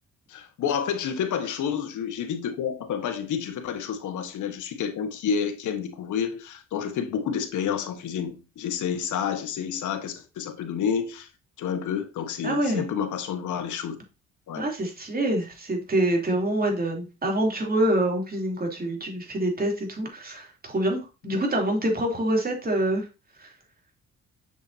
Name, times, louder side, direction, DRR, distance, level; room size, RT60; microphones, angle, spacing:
voice 1, 0.3-11.3 11.6-14.0 14.5-14.7 21.3-21.4, left 7 dB, 75° left, 1.5 m, -29 dB
voice 2, 12.4-12.8 14.6-23.1 23.4-23.5, right 1 dB, 30° right, 3.4 m, -26 dB
7.3 x 6.9 x 2.8 m
cardioid pair, 90°, 30 cm